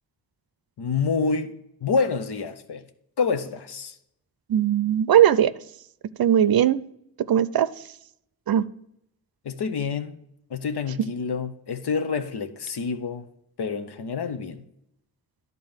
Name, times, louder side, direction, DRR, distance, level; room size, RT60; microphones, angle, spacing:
voice 1, 0.8-1.5 1.8-2.8 3.2-4.0 9.4-10.2 10.5-13.3 13.6-14.6, left 5 dB, 75° left, 0.9 m, -27 dB
voice 2, 4.5-5.5 6.2-6.8 7.3-7.7 8.5-8.6, right 10 dB, 65° right, 0.5 m, -19 dB
10.5 x 4.1 x 7.2 m
cardioid pair, 45°, 40 cm